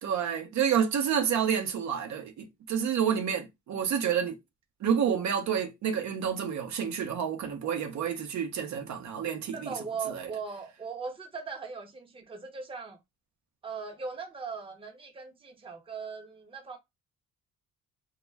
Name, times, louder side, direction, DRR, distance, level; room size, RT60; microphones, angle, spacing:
voice 1, 0.0-4.3 4.8-9.7 10.1-10.3, right 8 dB, 65° right, 0.7 m, -29 dB
voice 2, 9.4-13.0 13.6-16.8, right 5 dB, 20° right, 0.7 m, -39 dB
2.2 x 2.1 x 3.2 m
cardioid pair, 90°, 30 cm